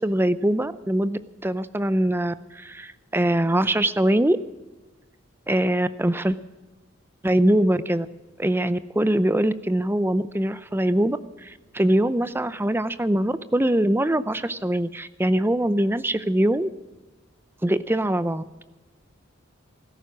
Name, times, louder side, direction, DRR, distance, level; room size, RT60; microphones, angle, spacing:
voice 1, 0.0-4.4 5.5-6.4 7.2-8.1 8.4-16.7 17.6-18.4, right 1 dB, 10° right, 14 dB, 0.6 m, -23 dB
16.0 x 14.0 x 6.2 m, 1.1 s
head